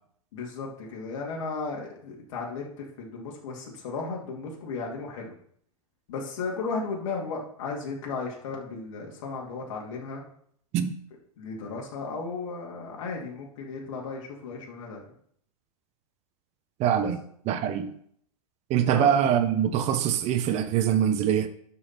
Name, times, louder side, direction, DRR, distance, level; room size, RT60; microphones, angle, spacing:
voice 1, 0.3-5.3 6.1-10.2 11.4-15.0 17.0-17.1 18.9-19.1, left 4 dB, 60° left, -2 dB, 2.8 m, -35 dB
voice 2, 16.8-17.2 17.5-17.9 18.7-21.5, right 9 dB, 35° right, 10 dB, 1.0 m, -23 dB
12.5 x 5.6 x 4.4 m, 0.65 s
figure-of-eight pair, 95°, 19 cm